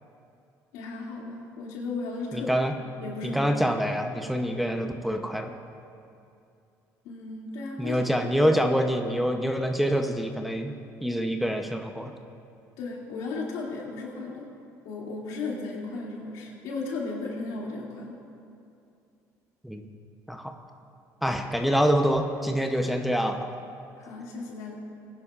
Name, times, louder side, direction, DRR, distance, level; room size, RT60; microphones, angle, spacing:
voice 1, 0.7-2.7 3.0-3.6 7.0-8.0 8.4-8.6 12.8-14.5 14.8-18.1 24.0-24.7, left 3 dB, 90° left, -3 dB, 2.4 m, -35 dB
voice 2, 2.3-2.7 3.2-5.5 7.8-10.7 11.0-12.1 19.6-19.9 20.3-20.5 21.2-23.5, equal, ahead, 3 dB, 0.7 m, -26 dB
20.0 x 11.0 x 2.4 m, 2.6 s
cardioid pair, 115°, 7 cm